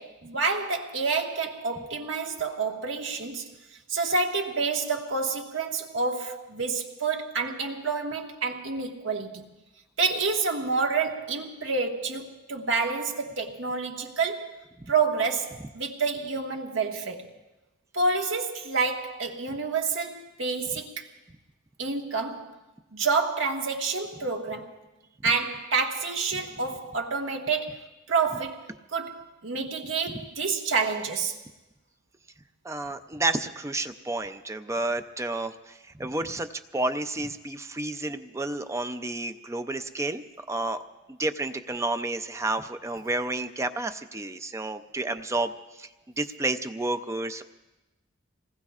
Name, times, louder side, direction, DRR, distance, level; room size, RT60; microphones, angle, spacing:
voice 1, 0.0-3.5 3.9-9.4 10.0-17.3 17.9-21.1 21.8-22.6 22.9-24.7 25.2-31.4, right 4 dB, 75° right, 1.5 m, -28 dB
voice 2, 32.6-36.5 36.7-40.2 40.5-40.8 41.1-45.5 45.8-45.9 46.2-47.4, right 2 dB, 15° right, 0.4 m, -30 dB
26.5 x 19.5 x 2.4 m
head